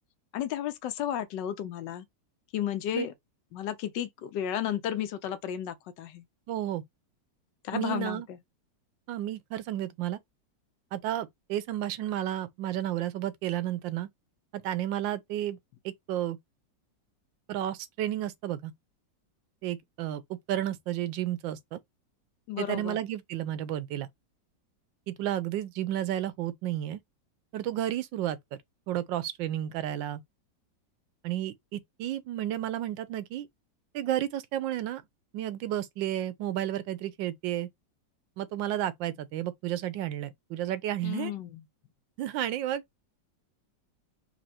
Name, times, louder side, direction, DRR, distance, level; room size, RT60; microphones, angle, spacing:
voice 1, 0.3-2.1 2.5-3.1 3.5-6.2 7.6-8.4 22.5-23.0 41.0-41.6, left 10 dB, 75° left, 1.3 m, -33 dB
voice 2, 6.5-6.8 7.7-8.3 9.1-10.2 10.9-14.1 14.5-15.6 15.8-16.4 17.5-18.7 19.6-20.2 20.5-21.8 22.6-24.1 25.1-27.0 27.5-28.4 28.9-30.2 31.2-33.5 33.9-35.0 35.3-37.7 38.4-41.3 42.2-42.8, right 12 dB, 85° right, 1.3 m, -32 dB
4.3 x 2.7 x 4.2 m
omnidirectional pair, 2.0 m